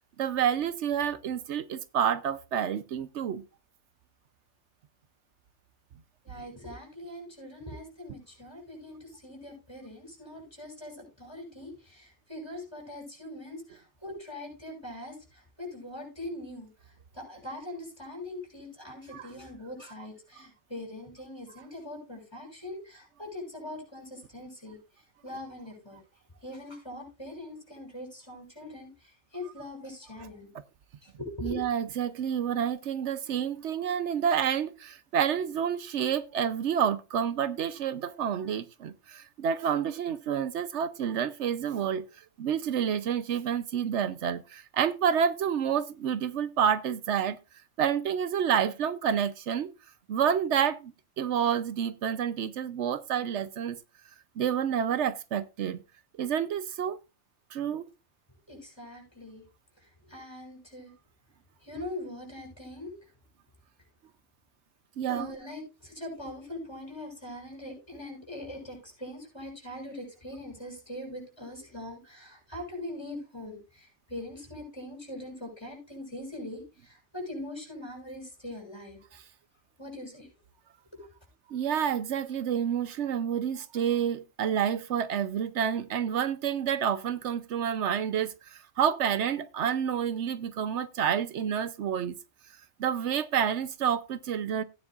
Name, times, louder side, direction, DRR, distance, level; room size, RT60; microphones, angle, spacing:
voice 1, 0.2-3.4 19.1-19.2 31.4-42.1 42.4-47.4 47.8-49.7 50.1-53.8 54.4-55.8 56.2-57.0 57.5-57.9 65.0-65.3 79.1-79.2 81.5-92.2 92.8-94.6, right 8 dB, 80° right, 1.0 m, -29 dB
voice 2, 6.2-26.0 26.4-30.5 31.0-31.6 58.5-59.4 59.8-60.9 61.6-62.9 65.1-79.0 79.8-80.3, left 1 dB, 20° left, 6.5 m, -42 dB
16.5 x 9.8 x 2.4 m
omnidirectional pair, 1.2 m